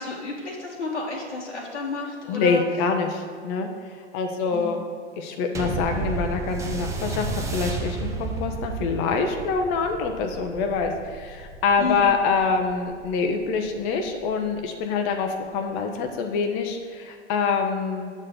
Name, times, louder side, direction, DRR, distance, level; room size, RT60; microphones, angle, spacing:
voice 1, 0.0-2.6 4.5-4.7 11.8-12.0, left 3 dB, 80° left, -4 dB, 1.4 m, -31 dB
voice 2, 2.3-3.7 4.1-4.8 5.2-18.1, left 5 dB, 30° left, 4 dB, 0.7 m, -25 dB
sound 1, 5.6-14.3 15.1-15.2, right 3 dB, 10° right, 0.5 m, -33 dB
7.4 x 4.1 x 6.5 m, 2.1 s
figure-of-eight pair, 100°, 34 cm